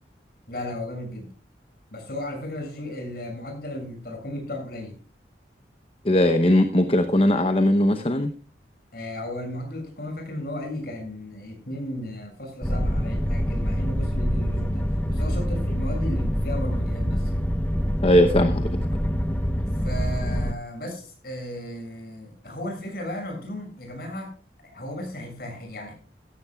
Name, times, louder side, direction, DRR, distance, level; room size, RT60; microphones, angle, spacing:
voice 1, 0.5-1.3 1.9-4.9 8.9-14.8 15.1-17.3 19.8-24.3 24.6-25.9, left 1 dB, 55° left, 2 dB, 6.7 m, -35 dB
voice 2, 6.0-8.3 18.0-18.6, left 1 dB, 30° left, 7 dB, 0.8 m, -19 dB
sound 1, 12.6-20.5, equal, 10° left, 0.9 m, -25 dB
15.5 x 15.0 x 2.3 m, 0.40 s
head